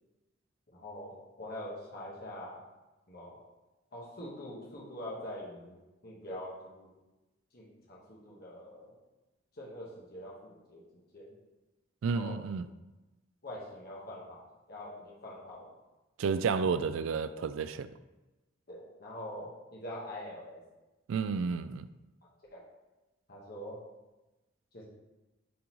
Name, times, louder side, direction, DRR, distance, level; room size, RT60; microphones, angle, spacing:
voice 1, 0.7-2.6 3.1-3.4 3.9-5.8 6.0-6.9 7.5-8.9 9.5-10.8 11.1-11.4 12.1-12.4 13.4-15.8 18.7-20.6 22.5-22.6 23.3-23.8 24.7-24.8, left 1 dB, 50° left, 1.3 m, -44 dB
voice 2, 12.0-12.6 16.2-17.9 21.1-21.9, right 5 dB, 85° right, 0.3 m, -31 dB
8.4 x 3.8 x 3.1 m
head